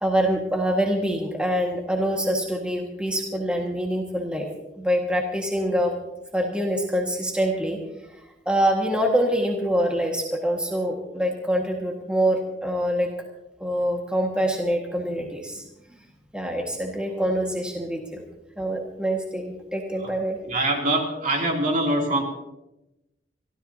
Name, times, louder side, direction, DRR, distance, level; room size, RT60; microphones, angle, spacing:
voice 1, 0.0-4.5 4.8-5.9 6.3-7.8 8.4-13.1 13.6-15.6 16.3-18.3 18.6-20.4, equal, 5° right, 0 dB, 1.7 m, -25 dB
voice 2, 20.4-22.2, right 1 dB, 50° right, 0 dB, 2.9 m, -24 dB
25.5 x 14.0 x 2.8 m, 0.92 s
head